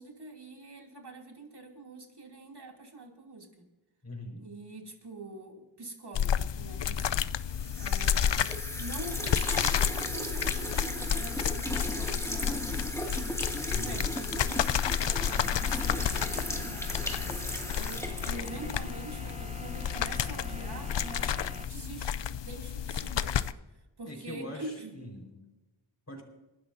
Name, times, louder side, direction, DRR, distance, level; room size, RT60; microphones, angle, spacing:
voice 1, 0.0-3.6 4.4-7.3 7.7-13.1 13.7-17.4 17.8-23.4 23.7-25.0, right 2 dB, 50° right, 1 dB, 2.9 m, -45 dB
voice 2, 4.0-4.4 13.7-14.1 23.2-23.3 24.1-25.3 26.1-26.2, equal, 30° left, 1 dB, 4.5 m, -42 dB
tattoo shaking bottle, 6.1-23.5, left 9 dB, 60° left, 0.6 m, -31 dB
sound 1, 7.5-19.0, equal, 5° left, 2.1 m, -37 dB
sound 2, 15.0-21.7, right 1 dB, 15° right, 0.9 m, -45 dB
29.5 x 12.5 x 2.7 m, 1.1 s
wide cardioid pair, 60°, 49 cm